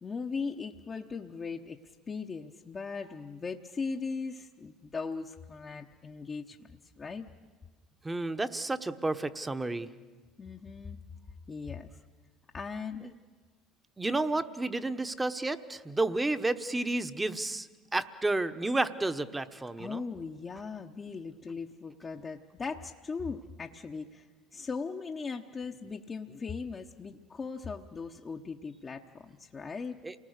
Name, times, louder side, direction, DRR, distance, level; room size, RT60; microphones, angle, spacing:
voice 1, 0.0-6.7 7.0-7.3 10.4-11.0 11.5-11.9 12.5-13.1 19.8-30.0, left 4 dB, 30° left, 2 dB, 0.9 m, -39 dB
voice 2, 8.0-9.9 13.0-13.1 14.0-20.0 30.0-30.1, right 2 dB, 15° right, 11 dB, 1.1 m, -31 dB
28.0 x 19.5 x 6.6 m, 1.4 s
hypercardioid pair, 80°, 0 cm